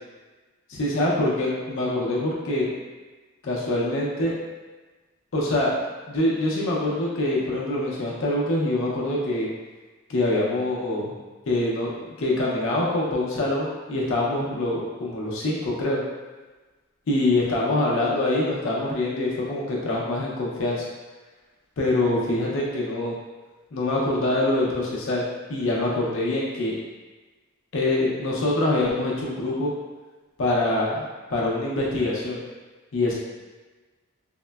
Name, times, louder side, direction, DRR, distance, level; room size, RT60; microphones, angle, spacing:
voice 1, 0.7-2.7 3.4-4.3 5.3-5.7 6.1-9.5 10.1-11.1 11.5-11.9 12.2-16.0 17.1-20.9 21.8-23.1 23.7-25.2 25.5-26.8 27.7-29.7 30.4-31.0 31.3-32.4 32.9-33.1, left 2 dB, 60° left, -4 dB, 0.5 m, -24 dB
3.5 x 2.0 x 2.2 m, 1.3 s
head